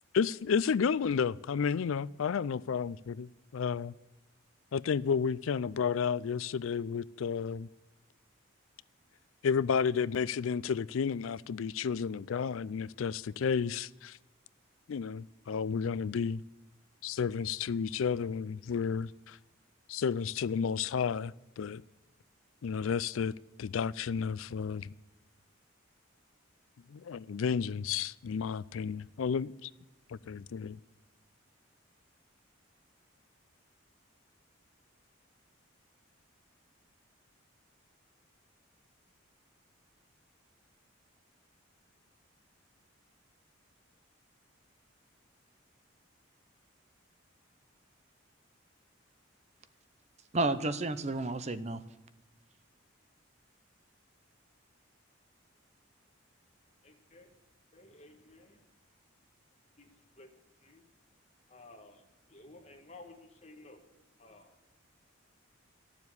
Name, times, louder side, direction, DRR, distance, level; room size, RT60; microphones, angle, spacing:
voice 1, 0.1-3.9 4.7-7.7 9.4-14.2 14.9-16.4 17.0-19.4 19.9-21.8 22.6-24.9 26.9-29.7 30.1-30.8, left 6 dB, 80° left, 0.4 m, -32 dB
voice 2, 50.3-51.8, right 2 dB, 30° right, 0.7 m, -31 dB
voice 3, 56.8-57.3 57.7-58.7 59.8-60.9 61.5-63.9 64.2-64.6, left 2 dB, 30° left, 1.7 m, -55 dB
12.0 x 7.2 x 9.6 m
head